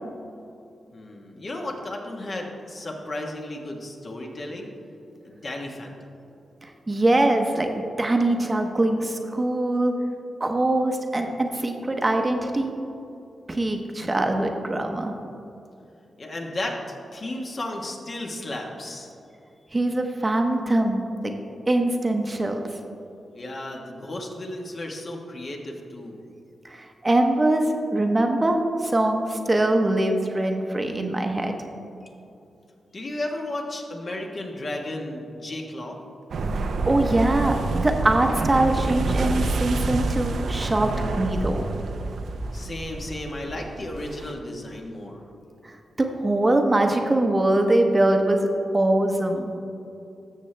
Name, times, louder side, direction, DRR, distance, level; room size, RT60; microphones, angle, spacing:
voice 1, 0.9-4.7 5.2-5.9 16.2-16.8 17.1-19.1 23.3-26.2 32.9-36.0 42.5-45.2, left 1 dB, 45° left, 1 dB, 1.3 m, -34 dB
voice 2, 6.6-9.9 10.4-12.7 13.5-15.2 19.7-21.3 21.7-22.7 26.6-31.6 36.4-40.9 41.2-41.6 45.6-48.5 48.7-49.5, right 1 dB, 25° right, 4 dB, 0.8 m, -23 dB
sound 1, 36.3-44.3, right 3 dB, 75° right, 0.6 m, -28 dB
13.5 x 6.6 x 3.3 m, 2.7 s
cardioid pair, 70°, 0 cm